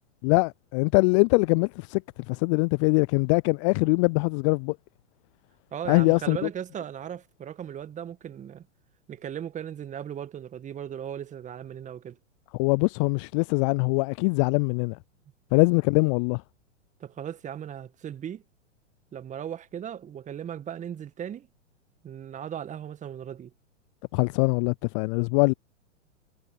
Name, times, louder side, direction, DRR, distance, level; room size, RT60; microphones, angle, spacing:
voice 1, 0.2-2.0 2.3-4.8 5.9-6.4 12.6-15.0 15.5-16.4 24.1-25.5, left 32 dB, 25° left, 0.4 m, -22 dB
voice 2, 5.7-8.7 9.1-12.2 17.0-18.4 19.1-21.5 22.0-23.5, right 9 dB, 20° right, 1.8 m, -37 dB
figure-of-eight pair, 105°, 37 cm